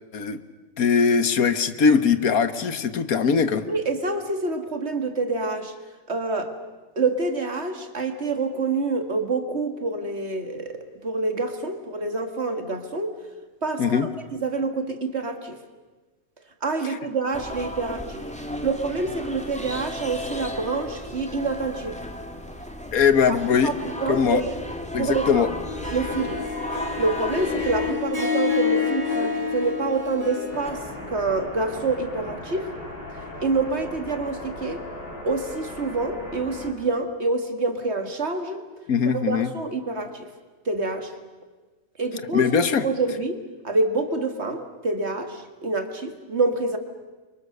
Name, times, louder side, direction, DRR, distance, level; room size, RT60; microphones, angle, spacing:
voice 1, 0.8-3.7 13.8-14.1 22.9-23.7 24.1-24.4 24.9-25.5 38.9-39.5 42.3-42.9, left 6 dB, 90° left, 1.7 m, -21 dB
voice 2, 3.7-5.7 6.1-6.6 7.0-13.1 13.6-15.6 16.6-18.2 18.6-22.0 23.3-23.4 23.6-24.6 25.0-25.5 25.9-26.4 27.0-32.7 33.4-34.8 35.2-38.6 39.1-40.3 40.7-41.1 42.0-42.5 42.8-46.8, right 3 dB, 50° right, 2.3 m, -27 dB
sound 1, 17.3-27.9, left 1 dB, 5° left, 1.9 m, -34 dB
Harp, 25.7-31.0, left 6 dB, 20° right, 4.7 m, -28 dB
sound 2, 30.5-36.7, left 1 dB, 40° left, 5.2 m, -38 dB
29.5 x 24.5 x 6.7 m
omnidirectional pair, 1.5 m